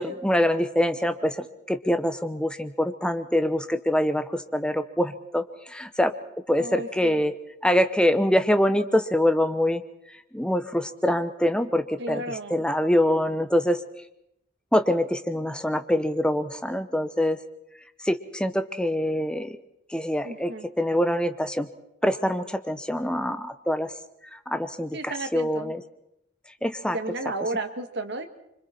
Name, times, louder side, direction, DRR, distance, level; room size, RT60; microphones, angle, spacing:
voice 1, 0.0-6.1 6.5-7.3 7.6-9.8 10.3-13.8 14.7-17.4 18.0-19.6 19.9-20.5 20.8-21.7 22.0-23.9 24.5-25.8 26.6-27.0, left 1 dB, 5° left, 8 dB, 0.9 m, -24 dB
voice 2, 6.6-7.2 12.0-12.6 20.2-20.7 24.9-25.7 26.9-28.2, right 2 dB, 60° right, 7 dB, 1.7 m, -33 dB
26.0 x 24.5 x 4.4 m, 0.81 s
head